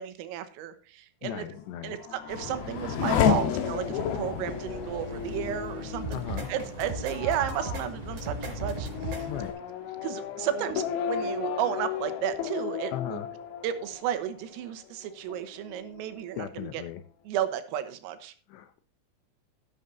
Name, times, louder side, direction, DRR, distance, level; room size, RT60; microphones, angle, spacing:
voice 1, 0.0-1.5 1.8-6.2 6.5-9.3 10.0-13.2 13.6-16.8 17.3-18.3, right 10 dB, 85° right, 9 dB, 3.8 m, -33 dB
voice 2, 1.2-2.0 6.1-6.5 9.3-9.6 12.9-13.3 16.4-17.0 18.5-18.8, left 12 dB, 90° left, 10 dB, 2.4 m, -37 dB
Race car auto racing / Accelerating revving vroom, 1.7-14.9 15.3-16.0, left 7 dB, 70° left, 2.4 m, -32 dB
sound 1, 2.3-9.5, left 2 dB, 10° left, 3.0 m, -40 dB
sound 2, 6.0-6.5 6.8-7.8 8.2-9.2, right 3 dB, 40° right, 4.8 m, -35 dB
13.0 x 11.0 x 2.7 m, 0.40 s
omnidirectional pair, 6.0 m